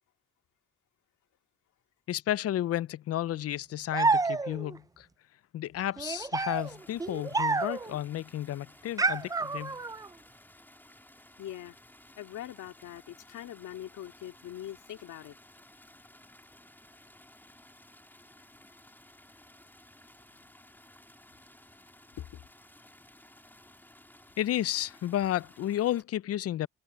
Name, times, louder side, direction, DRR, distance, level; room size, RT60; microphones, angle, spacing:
voice 1, 2.1-5.1 5.5-9.8 24.4-26.7, left 12 dB, 55° left, 0.5 m, -32 dB
sound 1, 3.9-4.8 6.0-8.0 9.0-10.1, right 3 dB, 10° right, 0.4 m, -29 dB
sound 2, 6.5-26.0, left 1 dB, 5° left, 3.0 m, -56 dB
voice 2, 11.4-11.8 12.2-15.4 22.2-22.4, left 12 dB, 75° left, 2.2 m, -42 dB
cardioid pair, 90°, 30 cm